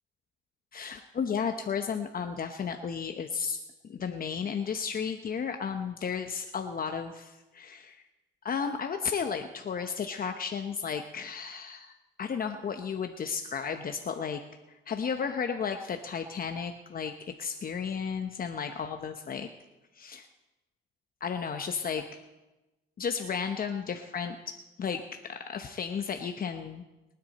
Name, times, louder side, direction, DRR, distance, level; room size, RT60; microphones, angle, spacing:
voice 1, 0.7-3.6 3.8-8.0 8.4-11.9 12.2-14.4 14.9-19.5 19.9-20.3 21.2-22.1 23.0-26.8, left 6 dB, 45° left, 6 dB, 0.9 m, -33 dB
23.0 x 9.7 x 4.2 m, 1.1 s
cardioid pair, 90°, 20 cm